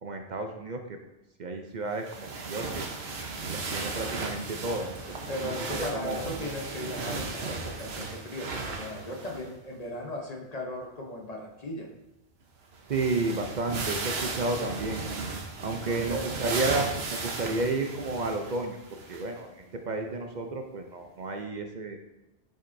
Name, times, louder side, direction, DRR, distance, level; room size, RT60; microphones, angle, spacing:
voice 1, 0.0-1.0 1.4-2.9 3.5-6.3 12.9-15.0 15.6-22.0, right 3 dB, 50° right, 4 dB, 0.7 m, -32 dB
sound 1, 2.0-9.5 9.8-9.9 12.4-12.5 12.7-19.4 20.0-20.1 21.2-21.3, right 3 dB, 80° right, 1.2 m, -36 dB
voice 2, 5.3-11.9 15.7-16.3, left 1 dB, 40° left, 1 dB, 1.0 m, -37 dB
7.8 x 7.2 x 2.6 m, 0.95 s
omnidirectional pair, 1.0 m